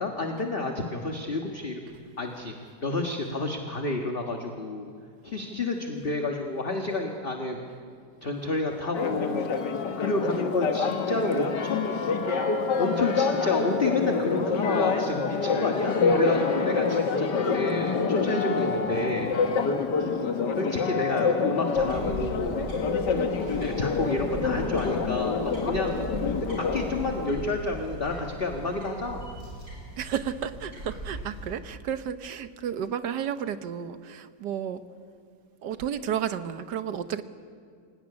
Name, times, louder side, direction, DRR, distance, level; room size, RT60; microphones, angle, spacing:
voice 1, 0.0-1.8 2.2-2.5 2.8-4.9 5.2-7.6 8.2-9.5 10.0-12.0 12.8-19.3 20.5-22.6 23.1-23.3 23.6-26.0 26.6-29.2, left 2 dB, 35° left, 2 dB, 1.7 m, -30 dB
Church bell, 8.9-27.3, left 5 dB, 80° left, 2.1 m, -27 dB
voice 2, 20.0-20.3 30.0-34.8 35.6-37.2, right 8 dB, 75° right, 11 dB, 1.6 m, -32 dB
sound 1, 21.7-31.5, right 1 dB, 50° right, 7.0 m, -39 dB
25.5 x 18.0 x 9.7 m, 2.2 s
omnidirectional pair, 1.8 m